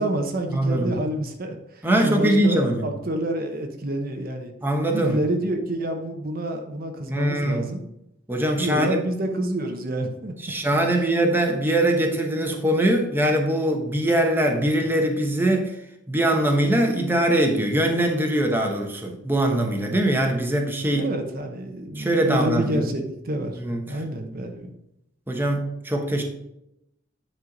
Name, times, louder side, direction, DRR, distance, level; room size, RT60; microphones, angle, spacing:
voice 1, 0.0-4.5 4.9-7.9 8.6-10.3 11.0-11.1 20.9-23.6 23.9-24.8, right 1 dB, 50° right, 4 dB, 1.0 m, -28 dB
voice 2, 0.5-1.0 1.8-2.9 4.6-5.2 7.1-7.6 8.3-9.0 10.4-15.7 16.1-21.1 22.0-22.9 23.6-23.8 25.3-26.2, right 1 dB, 10° right, 2 dB, 1.0 m, -22 dB
9.7 x 4.4 x 5.2 m, 0.83 s
head